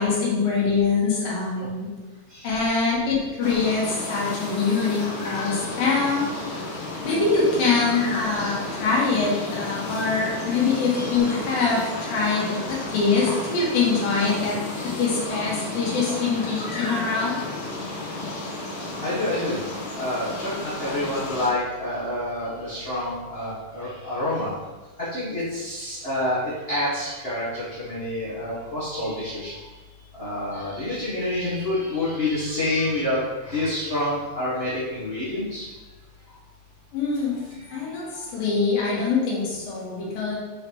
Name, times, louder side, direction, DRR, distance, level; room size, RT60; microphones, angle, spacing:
voice 1, 0.0-1.9 2.4-6.6 7.0-14.6 14.8-17.4 36.9-37.4 37.7-40.4, left 4 dB, 85° left, -4 dB, 3.3 m, -24 dB
sound 1, 3.4-21.5, left 2 dB, 70° left, 2.6 m, -32 dB
voice 2, 19.0-19.6 20.0-24.5 25.1-26.4 26.7-29.5 30.2-35.6, left 1 dB, 50° left, -12 dB, 0.6 m, -28 dB
7.7 x 4.4 x 3.0 m, 1.2 s
omnidirectional pair, 4.0 m